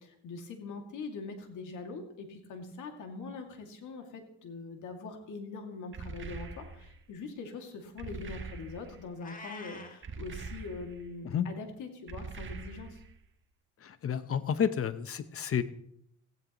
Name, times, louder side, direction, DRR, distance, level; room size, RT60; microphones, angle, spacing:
voice 1, 0.0-13.0, left 4 dB, 80° left, 4 dB, 2.4 m, -43 dB
sound 1, 5.9-7.0 8.0-9.1 10.0-11.1 12.1-13.2, right 4 dB, 40° right, 1.5 m, -43 dB
Meow, 9.2-10.0, left 3 dB, 25° left, 2.0 m, -46 dB
voice 2, 13.8-15.6, left 8 dB, 50° left, 13 dB, 0.9 m, -30 dB
16.5 x 15.5 x 3.1 m, 0.72 s
cardioid pair, 90°, 30 cm